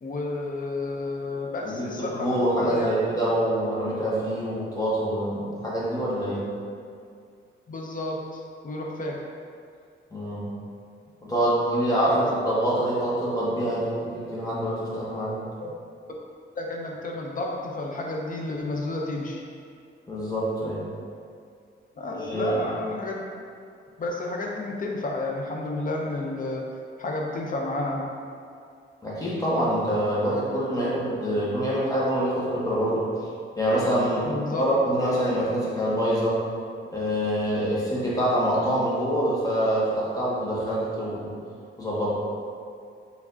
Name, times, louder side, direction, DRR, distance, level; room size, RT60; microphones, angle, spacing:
voice 1, 0.0-2.9 7.7-9.2 12.1-12.2 15.6-15.7 16.6-19.4 22.0-23.2 24.0-26.7 27.0-28.1 34.2-34.6, left 2 dB, 40° left, -1 dB, 0.6 m, -31 dB
voice 2, 1.6-6.5 10.1-10.5 11.2-15.4 20.1-20.8 22.2-22.7 29.0-33.1 33.6-34.3 34.6-36.5 36.9-41.4 41.8-42.1, right 1 dB, 15° left, -7 dB, 1.1 m, -25 dB
4.7 x 3.3 x 2.7 m, 2.3 s
wide cardioid pair, 125°, 20 cm